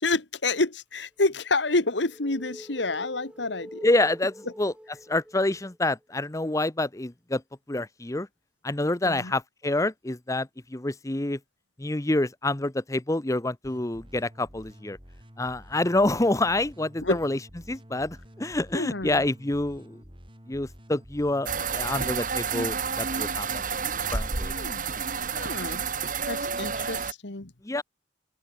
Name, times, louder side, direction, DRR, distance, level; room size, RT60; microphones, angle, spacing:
voice 1, 0.0-3.9 9.0-9.3 17.0-17.2 18.7-19.2 24.6-24.8 25.4-25.8 26.3-27.5, left 3 dB, 85° left, 1.9 m, -28 dB
sound 1, 1.3-6.0 9.3-9.4, equal, 5° right, 6.1 m, -46 dB
voice 2, 3.8-4.7 5.1-7.4 7.7-8.3 8.6-11.4 11.8-15.0 15.4-17.4 17.7-20.0 20.5-23.6 24.1-24.5 27.6-27.8, left 2 dB, 20° left, 0.8 m, -27 dB
sound 2, 13.6-25.8, equal, 30° right, 7.5 m, -50 dB
sound 3, 21.5-27.1, right 5 dB, 50° right, 2.3 m, -30 dB
open air
head